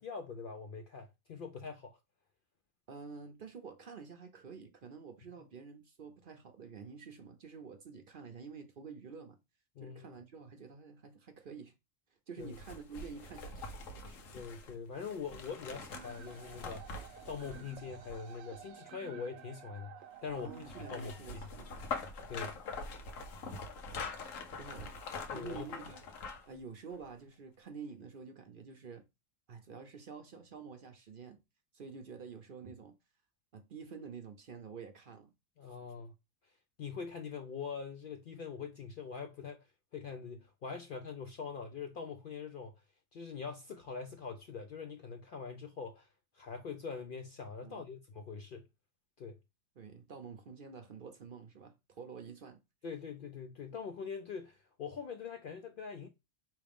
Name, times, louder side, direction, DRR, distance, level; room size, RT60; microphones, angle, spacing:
voice 1, 0.0-2.0 9.8-10.2 12.4-12.6 14.3-17.0 17.3-21.4 22.3-22.6 25.3-25.7 35.6-36.1 36.8-39.7 39.9-42.8 43.1-46.1 46.3-48.6 49.2-49.4 52.8-56.1, left 5 dB, 60° left, 0.6 m, -43 dB
voice 2, 2.9-9.4 9.8-11.7 12.3-14.2 15.7-15.9 20.4-21.8 24.5-24.9 25.3-26.0 26.5-29.0 29.5-31.4 31.7-32.9 33.5-35.3 47.6-47.9 49.8-52.6, right 5 dB, 50° right, 0.7 m, -49 dB
sound 1, 12.4-18.6 20.2-26.6 26.9-27.0, left 4 dB, 85° left, 1.2 m, -44 dB
sound 2, 15.9-21.9, right 8 dB, 85° right, 1.0 m, -53 dB
4.8 x 3.1 x 3.4 m
omnidirectional pair, 1.3 m